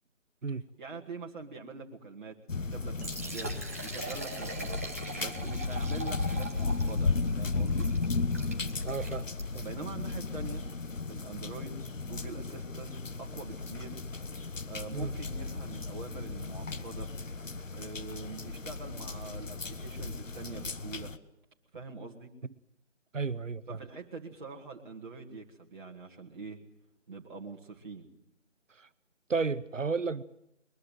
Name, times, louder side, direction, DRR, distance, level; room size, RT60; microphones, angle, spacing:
voice 1, 0.8-2.4 2.7-3.5 3.8-4.7 5.2-7.9 9.6-10.7 11.1-14.0 14.7-17.1 17.7-21.1 21.7-22.3 23.7-26.6 27.1-28.1, right 3 dB, 40° right, 2.2 m, -44 dB
sound 1, 2.5-21.2, left 3 dB, 85° left, 1.3 m, -35 dB
Liquid, 2.8-9.7, right 2 dB, 10° right, 0.8 m, -42 dB
voice 2, 8.8-9.3 9.5-9.6 14.9-15.1 23.1-23.8 28.8-28.9 29.3-30.2, right 4 dB, 80° right, 1.0 m, -32 dB
22.0 x 21.5 x 7.6 m
figure-of-eight pair, 160°, 37 cm